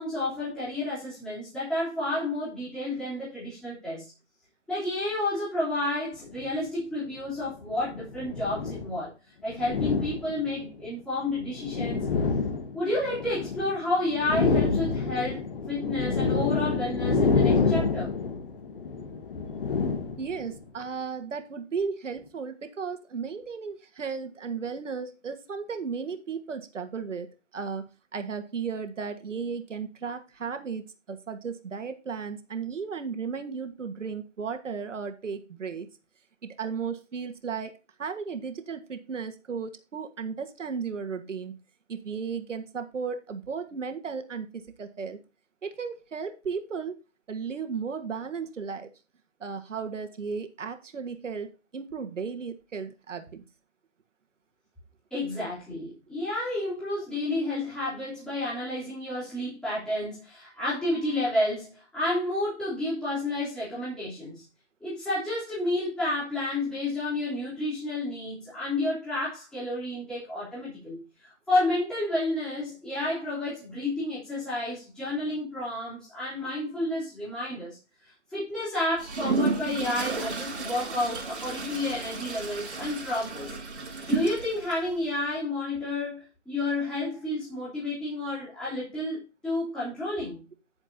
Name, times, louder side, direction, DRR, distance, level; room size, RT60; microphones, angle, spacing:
voice 1, 0.0-4.1 4.7-9.1 9.4-12.0 12.7-15.4 15.7-18.1 55.1-64.4 64.8-77.8 78.3-83.5 84.1-90.4, left 1 dB, ahead, 3.4 m, -30 dB
sound 1, 6.3-6.5 7.5-9.0 9.5-10.7 11.3-13.8 14.0-20.6, left 4 dB, 50° left, 1.5 m, -28 dB
voice 2, 20.2-27.8 28.1-35.9 36.6-37.7 38.0-41.5 41.9-45.2 45.6-46.9 47.3-48.9 49.4-53.4, right 5 dB, 90° right, 1.6 m, -35 dB
Toilet flush, 79.0-84.8, right 4 dB, 70° right, 5.4 m, -32 dB
9.7 x 9.0 x 2.8 m
hypercardioid pair, 170°, 36 cm